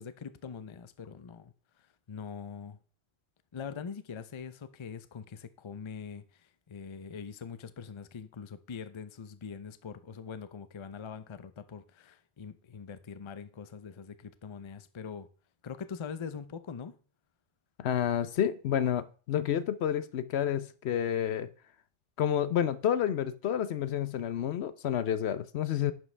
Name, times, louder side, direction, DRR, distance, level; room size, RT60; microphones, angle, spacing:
voice 1, 0.0-2.8 3.5-15.3 15.6-17.0, left 6 dB, 35° left, 0.5 m, -43 dB
voice 2, 17.8-21.5 22.2-25.9, left 9 dB, 70° left, 0.9 m, -29 dB
11.0 x 7.6 x 3.3 m
omnidirectional pair, 1.2 m